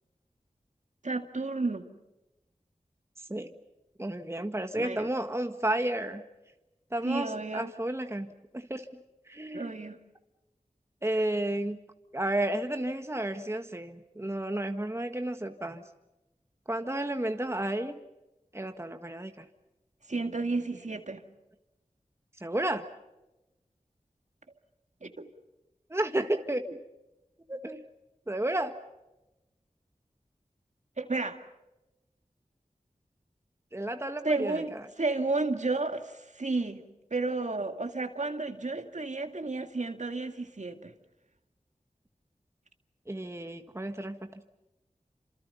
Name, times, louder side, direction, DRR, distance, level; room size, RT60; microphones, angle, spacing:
voice 1, 1.0-1.9 4.7-5.1 7.0-7.7 9.5-10.0 20.1-21.2 25.0-25.3 31.0-31.4 34.2-34.7 35.0-36.8 37.1-40.9, right 3 dB, 60° right, 7 dB, 2.2 m, -32 dB
voice 2, 4.0-6.2 6.9-8.9 9.3-9.7 11.0-11.8 12.1-15.8 16.7-18.0 18.5-19.4 22.4-22.9 25.9-26.6 27.5-27.8 28.3-28.8 33.7-34.8 43.1-44.4, right 1 dB, 20° right, 7 dB, 1.6 m, -32 dB
29.5 x 27.0 x 5.7 m, 0.98 s
wide cardioid pair, 50°, 14 cm